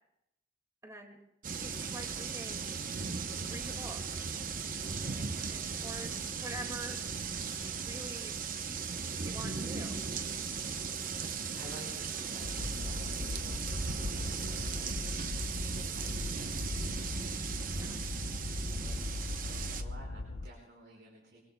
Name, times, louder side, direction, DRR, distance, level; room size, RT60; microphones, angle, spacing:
voice 1, 0.8-1.2 1.6-2.7 3.4-4.2 5.5-6.1 6.4-7.0 7.8-8.3 9.2-10.0 14.5-14.6 17.7-18.1, right 1 dB, 20° right, 1 dB, 2.1 m, -46 dB
sound 1, 1.4-19.8, right 5 dB, 50° right, 0.8 m, -37 dB
voice 2, 5.0-5.3 6.0-6.1 11.5-17.2 18.7-21.4, right 1 dB, 75° right, -3 dB, 5.1 m, -54 dB
sound 2, 12.4-20.5, left 2 dB, 65° left, 0.7 m, -39 dB
26.5 x 24.0 x 2.3 m, 0.84 s
head